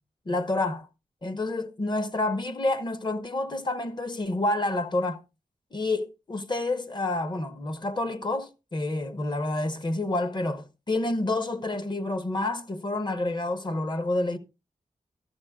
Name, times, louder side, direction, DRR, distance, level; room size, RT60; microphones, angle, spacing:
voice 1, 0.3-0.9 1.2-5.2 5.7-14.4, left 2 dB, 35° left, 0.9 m, -28 dB
15.0 x 12.5 x 2.3 m
wide cardioid pair, 115°, 13 cm